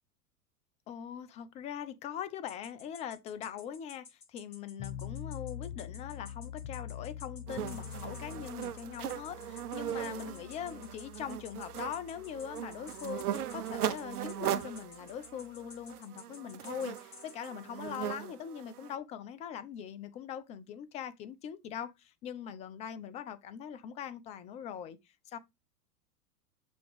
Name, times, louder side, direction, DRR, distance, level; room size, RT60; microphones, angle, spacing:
voice 1, 0.9-25.0 25.3-25.4, left 9 dB, 15° left, 0.3 m, -42 dB
sound 1, 2.5-17.5, left 5 dB, 70° left, 4.5 m, -52 dB
sound 2, 4.8-15.9, left 10 dB, 35° left, 0.9 m, -46 dB
sound 3, 7.5-18.9, right 11 dB, 75° right, 0.8 m, -39 dB
7.0 x 2.9 x 5.1 m
hypercardioid pair, 100°, 45 cm